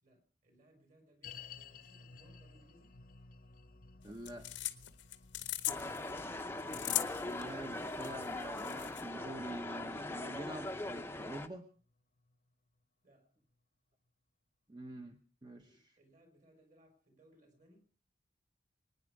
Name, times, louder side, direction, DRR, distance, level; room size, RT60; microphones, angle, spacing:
voice 1, 0.0-3.0 13.0-13.3 15.6-17.9, right 1 dB, 45° right, 6 dB, 4.6 m, -66 dB
sound 1, 1.2-12.5 12.8-12.9 13.5-13.6, left 5 dB, 50° left, 0.9 m, -57 dB
sound 2, 4.0-9.0, left 14 dB, 85° left, 1.0 m, -40 dB
voice 2, 4.0-4.5 6.8-11.7 14.7-16.0, right 1 dB, 25° right, 6 dB, 0.9 m, -47 dB
sound 3, 5.7-11.5, left 2 dB, 15° left, 0.7 m, -41 dB
24.5 x 9.8 x 4.8 m, 0.40 s
head